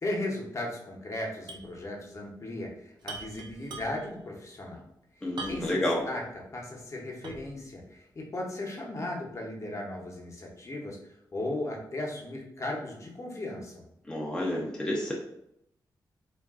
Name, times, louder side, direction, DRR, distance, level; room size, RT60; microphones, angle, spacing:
voice 1, 0.0-4.8 5.1-13.8, left 1 dB, 40° left, -1 dB, 0.8 m, -37 dB
sound 1, 1.5-1.7 2.0-2.1 3.0-4.2 5.4-5.9 6.4-6.5 7.2-7.6, right 3 dB, 80° right, 0.4 m, -41 dB
voice 2, 5.2-6.0 14.1-15.1, left 1 dB, 10° left, -3 dB, 0.5 m, -29 dB
2.3 x 2.2 x 3.5 m, 0.79 s
cardioid pair, 80°, 8 cm